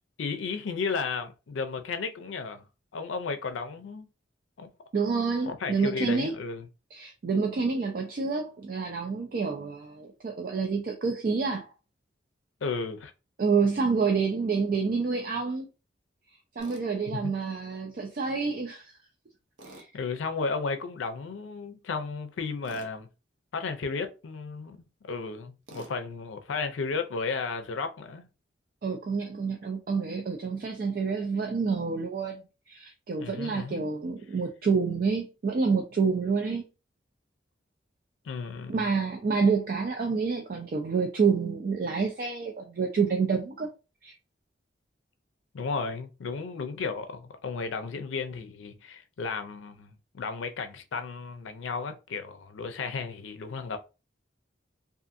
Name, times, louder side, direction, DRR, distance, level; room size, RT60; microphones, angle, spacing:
voice 1, 0.2-2.6 2.9-4.1 4.6-4.7 5.5-6.7 12.6-13.1 17.1-17.3 19.9-23.1 23.5-28.3 33.2-33.9 38.2-38.8 45.5-49.9 50.1-53.8, left 4 dB, 90° left, 0.4 m, -34 dB
voice 2, 4.9-6.3 6.9-11.7 13.4-15.7 16.6-19.0 19.7-19.9 28.8-32.4 32.7-36.6 38.7-43.7 44.0-44.1, right 5 dB, 50° right, 0.3 m, -28 dB
Tools, 16.6-16.8 19.6-19.9 22.6-22.9 25.7-26.0, right 1 dB, 80° right, 0.7 m, -47 dB
2.5 x 2.5 x 2.5 m
head